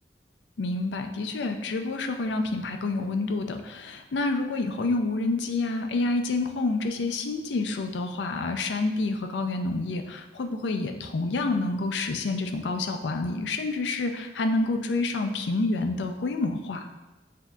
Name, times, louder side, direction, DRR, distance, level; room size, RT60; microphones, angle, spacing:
voice 1, 0.6-16.9, left 3 dB, 85° left, 5 dB, 0.4 m, -28 dB
7.3 x 2.7 x 2.3 m, 1.1 s
head